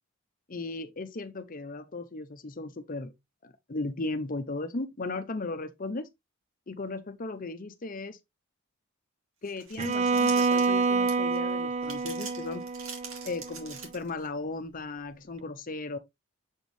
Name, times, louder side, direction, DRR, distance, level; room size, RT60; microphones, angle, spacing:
voice 1, 0.5-3.1 3.4-6.1 6.7-8.2 9.4-12.6 13.2-16.0, left 2 dB, 40° left, 0.7 m, -36 dB
sound 1, 9.4-11.4 11.8-14.3, right 5 dB, 80° right, 2.3 m, -43 dB
Bowed string instrument, 9.8-13.8, right 4 dB, 30° right, 0.4 m, -27 dB
7.1 x 4.6 x 3.2 m
head